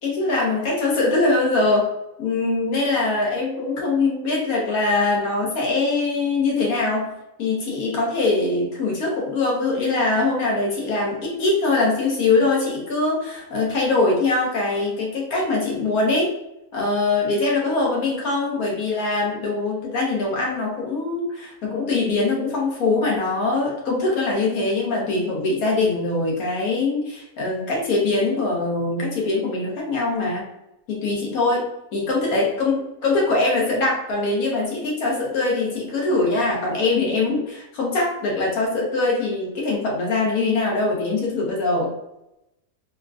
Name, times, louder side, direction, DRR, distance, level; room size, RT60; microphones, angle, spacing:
voice 1, 0.0-1.9 2.2-7.1 7.4-16.3 16.7-30.5 30.9-41.9, left 3 dB, 75° left, -3 dB, 1.4 m, -22 dB
3.6 x 2.4 x 2.3 m, 0.89 s
omnidirectional pair, 1.5 m